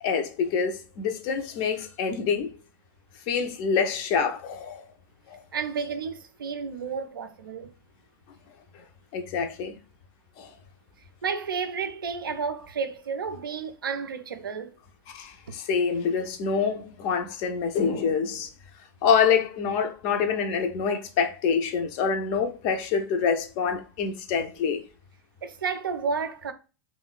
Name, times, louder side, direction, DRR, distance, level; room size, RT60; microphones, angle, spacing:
voice 1, 0.0-2.6 3.3-4.9 5.3-5.4 9.1-9.8 10.4-10.5 15.1-18.5 19.0-24.8, left 6 dB, 45° left, 0.5 m, -26 dB
voice 2, 5.5-7.7 11.2-14.7 25.4-26.5, right 5 dB, 75° right, 0.4 m, -31 dB
3.0 x 2.0 x 2.3 m
figure-of-eight pair, 85°, 12 cm